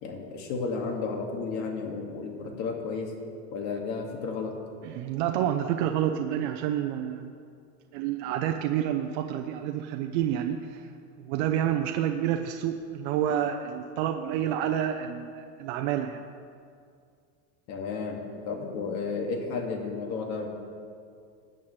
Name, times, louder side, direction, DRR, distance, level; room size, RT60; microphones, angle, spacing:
voice 1, 0.0-3.1 3.5-4.6 17.7-20.5, left 4 dB, 50° left, 2 dB, 2.0 m, -33 dB
voice 2, 4.8-7.3 7.9-10.9 11.2-16.2, right 10 dB, 65° right, 5 dB, 0.7 m, -29 dB
20.0 x 8.9 x 3.2 m, 2.3 s
cardioid pair, 155°, 35 cm